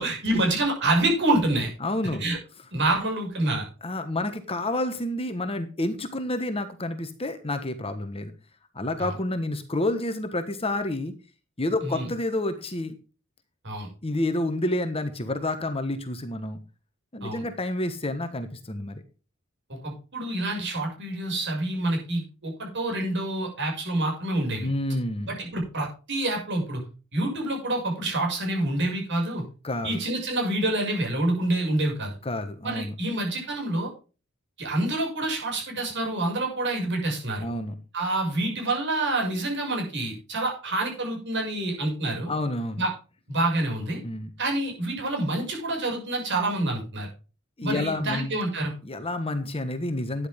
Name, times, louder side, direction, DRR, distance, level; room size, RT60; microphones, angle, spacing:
voice 1, 0.0-1.7 2.2-2.4 2.7-3.7 9.0-9.1 11.8-12.1 13.6-13.9 17.2-17.4 19.7-24.7 25.3-26.8 27.1-29.4 29.8-32.2 32.6-33.9 34.6-37.5 37.9-42.3 42.8-42.9 43.3-44.0 44.4-47.1 47.6-48.7, right 2 dB, 55° right, 1 dB, 6.4 m, -27 dB
voice 2, 1.8-2.2 3.8-8.3 8.7-11.1 11.6-12.9 14.0-16.6 17.1-19.0 24.6-25.4 29.6-30.0 32.2-32.9 37.4-37.8 42.3-42.8 44.0-44.3 47.6-48.3 48.8-50.3, left 1 dB, 25° left, 9 dB, 1.4 m, -29 dB
13.0 x 10.0 x 3.7 m, 0.34 s
head